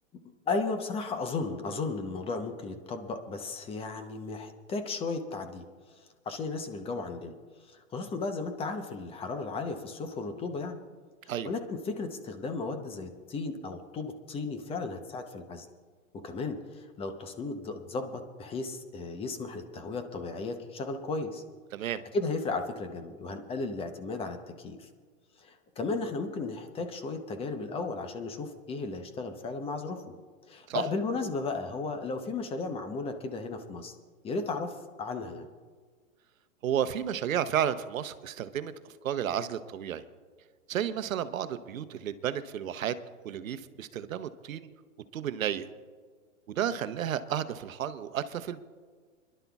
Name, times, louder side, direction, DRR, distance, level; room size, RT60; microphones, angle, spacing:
voice 1, 0.5-5.7 6.0-7.3 7.7-10.8 11.4-15.7 16.1-21.4 21.8-24.9 25.4-30.0 30.5-34.0 34.2-35.5, left 3 dB, 15° left, 7 dB, 0.8 m, -35 dB
voice 2, 21.7-22.0 30.7-30.8 36.6-38.7 39.0-40.0 40.7-42.9 43.2-44.7 45.1-45.7 46.5-48.6, right 9 dB, 80° right, 12 dB, 0.9 m, -32 dB
29.0 x 11.5 x 2.3 m, 1.5 s
hypercardioid pair, 135°, 40 cm